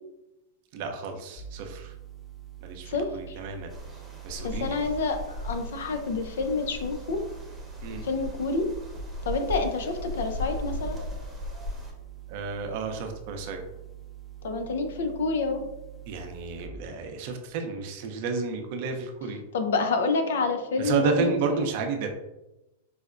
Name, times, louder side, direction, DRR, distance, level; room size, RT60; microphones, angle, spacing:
voice 1, 0.7-1.9 2.6-3.7 4.2-4.8 7.8-8.1 12.3-13.6 16.1-19.4 20.8-22.1, right 5 dB, 55° right, 4 dB, 0.5 m, -31 dB
sound 1, 1.4-16.7, right 12 dB, 15° left, 0.4 m, -45 dB
voice 2, 2.9-3.4 4.4-7.2 8.0-8.7 9.3-11.0 14.4-15.6 19.5-21.5, left 3 dB, 75° left, 6 dB, 0.5 m, -28 dB
sound 2, 3.7-11.9, left 2 dB, 10° right, 0.9 m, -37 dB
4.7 x 2.1 x 2.4 m, 0.94 s
hypercardioid pair, 115°, 0 cm